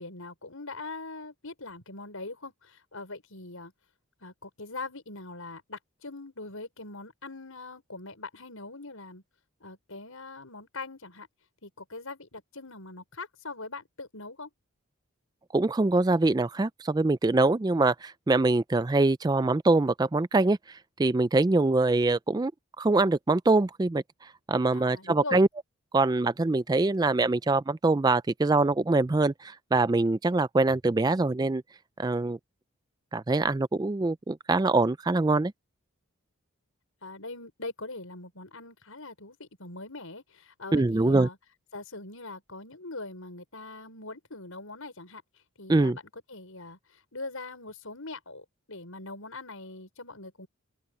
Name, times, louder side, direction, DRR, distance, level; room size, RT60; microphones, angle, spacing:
voice 1, 0.0-3.7 4.2-9.2 9.6-11.3 11.6-14.5 24.7-25.5 37.0-41.4 41.7-45.2 45.6-50.5, left 3 dB, 70° left, 5.8 m, -42 dB
voice 2, 15.5-22.5 22.8-24.0 24.5-25.5 25.9-31.6 32.0-32.4 33.1-35.5 40.7-41.3 45.7-46.0, right 2 dB, 20° right, 0.3 m, -24 dB
open air
head